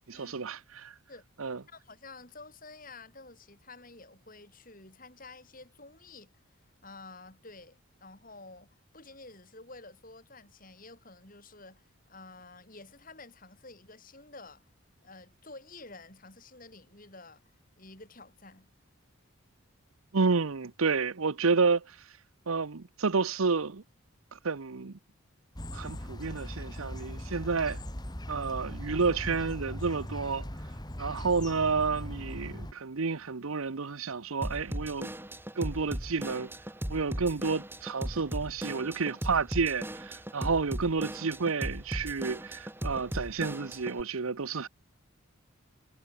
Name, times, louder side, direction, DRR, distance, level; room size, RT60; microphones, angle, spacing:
voice 1, 0.1-0.9 1.4-1.6 20.1-22.0 22.5-23.8 24.3-25.0 25.7-27.8 28.3-30.5 31.0-35.1 35.6-36.5 36.9-44.7, right 4 dB, 75° right, 0.8 m, -30 dB
voice 2, 1.7-6.3 6.8-14.6 15.0-17.4 17.8-18.7, left 3 dB, 40° left, 8.0 m, -50 dB
sound 1, 25.6-32.7, equal, 20° left, 3.0 m, -39 dB
Drum kit / Drum, 34.4-44.0, equal, 10° right, 2.2 m, -38 dB
head